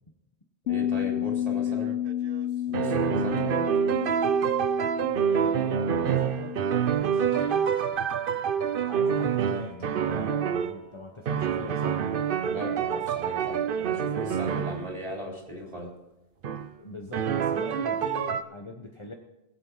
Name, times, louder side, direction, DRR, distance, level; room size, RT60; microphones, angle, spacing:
Bass guitar, 0.7-6.9, left 11 dB, 80° left, 0.8 m, -32 dB
voice 1, 0.7-2.0 2.7-3.7 12.4-15.9, left 1 dB, 35° right, -2 dB, 3.6 m, -37 dB
sound 1, 1.7-2.4 2.7-10.7 11.2-14.9 16.4-16.7 17.1-18.4, right 8 dB, 60° right, 0.8 m, -27 dB
voice 2, 5.1-6.6 6.9-7.7 8.9-12.0 16.8-19.1, left 2 dB, 30° left, 2 dB, 1.1 m, -41 dB
sound 2, 7.3-11.8 12.2-13.8 15.3-15.5, left 2 dB, 50° left, 2.0 m, -48 dB
20.5 x 8.7 x 4.0 m, 0.93 s
omnidirectional pair, 1.1 m